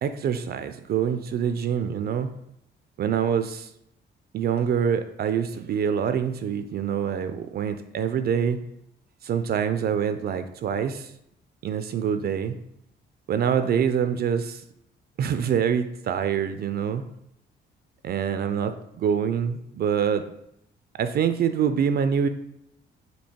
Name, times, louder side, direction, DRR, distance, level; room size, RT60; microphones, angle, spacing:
voice 1, 0.0-2.3 3.0-3.7 4.3-8.6 9.2-11.1 11.6-12.5 13.3-14.6 15.2-17.0 18.0-20.3 21.0-22.3, right 8 dB, 55° right, 9 dB, 0.4 m, -25 dB
4.5 x 2.7 x 4.3 m, 0.77 s
cardioid pair, 90°, 20 cm